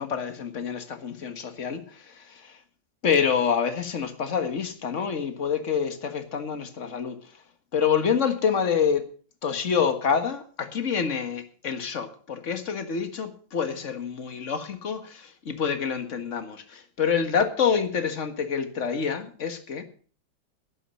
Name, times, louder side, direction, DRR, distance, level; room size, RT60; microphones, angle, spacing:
voice 1, 0.0-2.6 3.0-7.2 7.7-9.0 9.4-19.8, left 6 dB, 40° left, 1.8 m, -27 dB
11.5 x 11.5 x 6.2 m
omnidirectional pair, 2.0 m